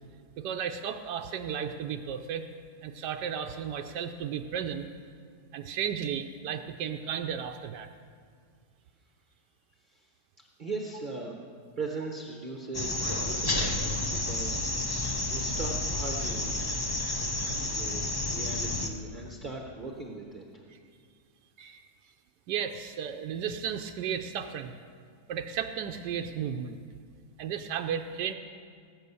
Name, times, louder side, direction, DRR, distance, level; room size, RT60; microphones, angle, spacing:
voice 1, 0.4-2.5 2.8-4.9 5.5-7.9 21.6-21.9 22.5-24.8 25.3-26.8 27.4-28.3, right 8 dB, 80° right, 6 dB, 1.2 m, -34 dB
voice 2, 10.6-15.0 15.3-16.6 17.4-20.4, right 3 dB, 35° right, 1 dB, 0.9 m, -39 dB
sound 1, 12.7-18.9, left 2 dB, 30° left, 0.4 m, -30 dB
18.5 x 8.3 x 6.8 m, 2.1 s
omnidirectional pair, 1.8 m